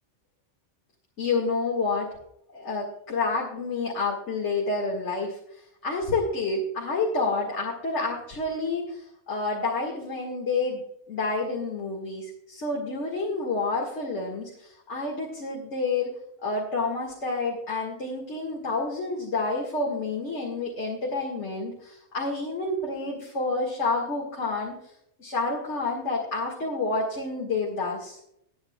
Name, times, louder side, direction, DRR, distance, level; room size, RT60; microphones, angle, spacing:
voice 1, 1.2-2.1 2.5-5.4 5.8-10.8 11.1-16.1 16.4-24.7 25.2-28.2, left 3 dB, 80° left, -2 dB, 2.2 m, -29 dB
20.5 x 9.5 x 2.3 m, 0.76 s
omnidirectional pair, 1.2 m